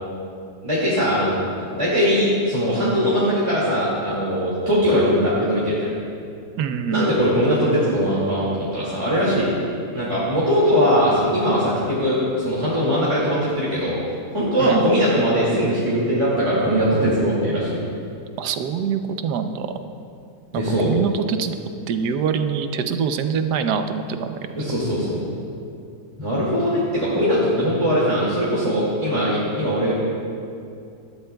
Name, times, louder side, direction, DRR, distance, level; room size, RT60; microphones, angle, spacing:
voice 1, 0.6-5.9 6.9-9.5 9.9-14.0 14.3-17.8 20.5-20.9 24.5-25.2 26.2-29.9, equal, 20° right, -9 dB, 2.2 m, -20 dB
voice 2, 6.6-7.1 14.6-14.8 18.4-19.7 20.5-21.6 21.9-24.4, right 6 dB, 80° right, 8 dB, 1.3 m, -24 dB
18.5 x 13.0 x 2.3 m, 2.4 s
omnidirectional pair, 1.7 m